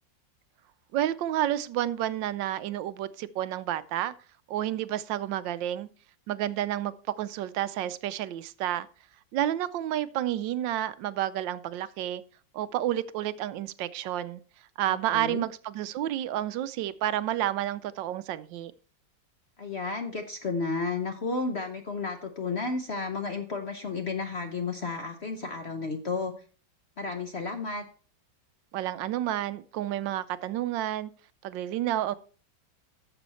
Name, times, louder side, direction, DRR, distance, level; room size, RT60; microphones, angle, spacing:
voice 1, 0.9-4.1 4.5-5.9 6.3-8.9 9.3-12.2 12.5-14.4 14.8-18.7 28.7-31.1 31.4-32.1, right 12 dB, 80° right, 1.3 m, -30 dB
voice 2, 14.9-15.5 19.6-26.3 27.0-27.8, left 4 dB, 50° left, 0.8 m, -32 dB
11.0 x 7.0 x 4.1 m
omnidirectional pair, 2.1 m